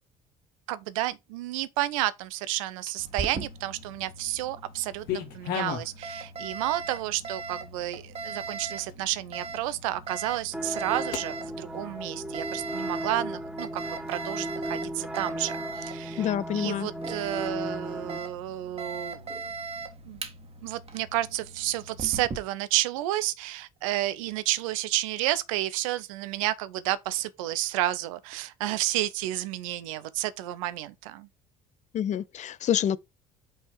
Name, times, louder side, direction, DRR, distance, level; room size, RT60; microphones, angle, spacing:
voice 1, 0.7-19.3 20.1-20.2 20.6-31.3, right 15 dB, 75° right, 0.7 m, -31 dB
sound 1, 2.6-3.3 3.8-4.5 4.7-6.0 6.4-6.9 7.5-7.6 8.1-8.2 8.9-9.0 11.1-11.3, left 9 dB, 60° left, 1.7 m, -35 dB
Alarm, 3.0-22.4, right 4 dB, 35° right, 1.6 m, -40 dB
sound 2, 10.5-18.2, right 1 dB, 5° right, 1.3 m, -36 dB
voice 2, 16.2-16.9 31.9-33.0, left 10 dB, 40° left, 0.6 m, -27 dB
5.6 x 4.5 x 4.5 m
hypercardioid pair, 60°, 18 cm